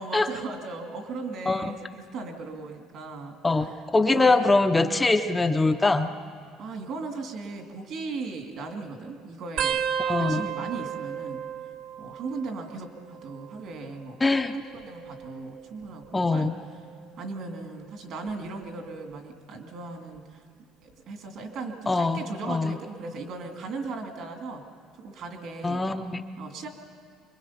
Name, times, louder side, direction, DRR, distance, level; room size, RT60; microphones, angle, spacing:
voice 1, 0.0-4.4 6.6-9.8 10.2-11.4 12.0-14.2 14.7-16.5 17.2-20.4 20.8-24.7 25.0-25.8 26.4-26.7, right 3 dB, 50° right, 4 dB, 2.3 m, -37 dB
voice 2, 3.4-6.1 10.0-10.5 14.2-14.5 16.1-16.5 21.9-22.8 25.6-26.2, left 3 dB, 10° left, 6 dB, 0.5 m, -23 dB
sound 1, 9.6-12.8 13.0-13.6 14.6-16.1 16.7-17.1 18.3-18.6 20.1-20.2, right 8 dB, 70° right, 1.2 m, -33 dB
25.0 x 22.5 x 5.8 m, 2.2 s
cardioid pair, 160°, 0 cm